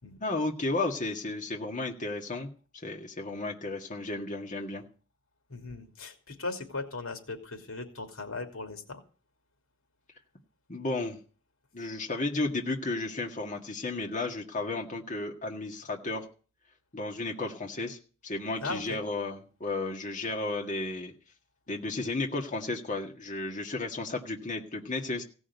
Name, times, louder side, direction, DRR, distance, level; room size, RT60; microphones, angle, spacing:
voice 1, 0.2-4.8 10.7-11.2 11.7-16.3 16.9-21.1 21.7-25.2, left 2 dB, 35° left, 1 dB, 1.9 m, -33 dB
voice 2, 5.5-9.0 18.6-19.0, left 3 dB, 80° left, 5 dB, 2.7 m, -38 dB
17.0 x 6.3 x 9.4 m, 0.38 s
head